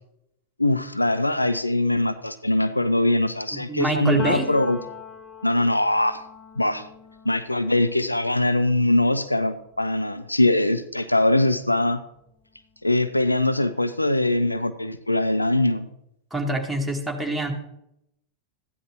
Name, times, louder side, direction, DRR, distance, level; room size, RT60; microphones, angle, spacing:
voice 1, 0.6-4.8 5.4-6.2 6.6-6.9 7.2-12.0 12.8-15.9, left 1 dB, 85° left, 11 dB, 0.5 m, -22 dB
voice 2, 3.5-4.5 16.3-17.5, right 2 dB, ahead, 0 dB, 1.7 m, -26 dB
Piano, 4.2-11.8 12.2-13.7, left 6 dB, 30° left, 0.8 m, -44 dB
14.0 x 9.9 x 3.1 m, 0.79 s
figure-of-eight pair, 90°, 0 cm